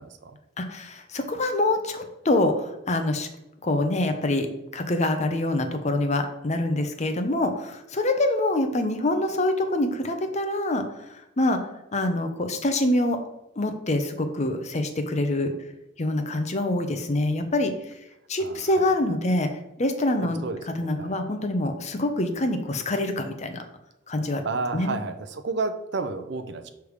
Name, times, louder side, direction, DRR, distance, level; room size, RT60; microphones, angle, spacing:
voice 1, 0.0-0.4 18.4-18.8 20.4-21.1 24.4-26.7, right 3 dB, 65° right, 9 dB, 0.6 m, -31 dB
voice 2, 0.6-3.3 3.6-4.5 4.7-10.8 11.1-11.6 11.9-13.2 13.6-15.5 16.0-17.7 18.3-19.5 19.8-20.4 20.8-23.6 24.1-24.4 24.7-24.9, left 1 dB, 40° left, 7 dB, 0.7 m, -25 dB
6.4 x 3.4 x 4.8 m, 0.91 s
head